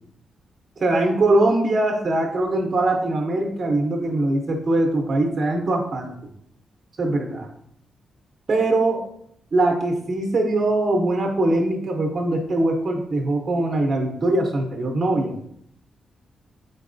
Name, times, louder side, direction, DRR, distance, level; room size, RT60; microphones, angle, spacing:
voice 1, 0.8-6.1 7.0-7.5 8.5-9.0 9.5-15.3, right 2 dB, 40° right, 2 dB, 0.6 m, -22 dB
4.6 x 3.9 x 2.5 m, 0.68 s
cardioid pair, 125°, 0 cm